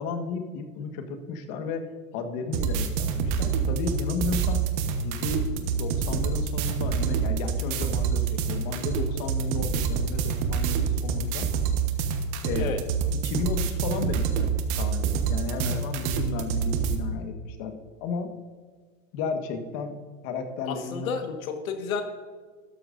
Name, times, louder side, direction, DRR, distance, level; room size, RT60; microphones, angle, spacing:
voice 1, 0.0-1.8 2.1-4.6 4.9-11.5 12.4-12.7 13.2-14.5 14.8-18.3 19.1-19.9 20.2-21.3, left 4 dB, 50° left, 6 dB, 1.5 m, -33 dB
sound 1, 2.5-17.0, right 6 dB, 50° right, 1.2 m, -27 dB
voice 2, 20.7-22.0, left 6 dB, 90° left, 6 dB, 1.6 m, -31 dB
13.0 x 10.5 x 2.6 m, 1.5 s
supercardioid pair, 130°, 40 cm